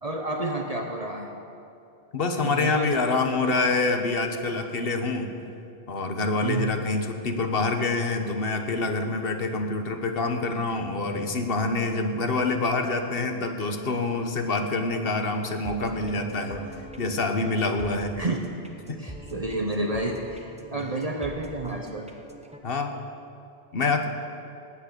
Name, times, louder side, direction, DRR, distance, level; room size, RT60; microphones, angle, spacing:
voice 1, 0.0-1.3 2.4-3.0 3.4-3.5 6.4-6.7 18.1-18.4 18.9-22.1, right 2 dB, 40° right, 2 dB, 1.0 m, -30 dB
voice 2, 2.1-5.3 5.9-16.6 17.0-18.1 18.9-19.0 20.7-20.8 22.6-22.9 23.7-24.1, left 3 dB, 65° left, 6 dB, 1.3 m, -26 dB
sound 1, 15.3-22.6, equal, 5° right, 1.0 m, -44 dB
18.0 x 8.8 x 6.8 m, 2.7 s
omnidirectional pair, 1.1 m